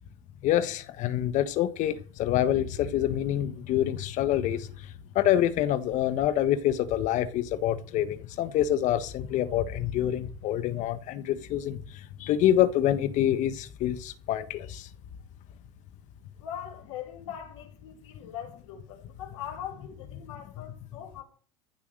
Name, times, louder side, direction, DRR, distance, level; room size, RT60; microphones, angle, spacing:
voice 1, 0.4-4.7 5.1-14.9, left 11 dB, 55° left, 1.4 m, -26 dB
voice 2, 16.4-21.2, left 9 dB, 80° left, 5.0 m, -41 dB
14.5 x 7.0 x 6.6 m
hypercardioid pair, 80°, 15 cm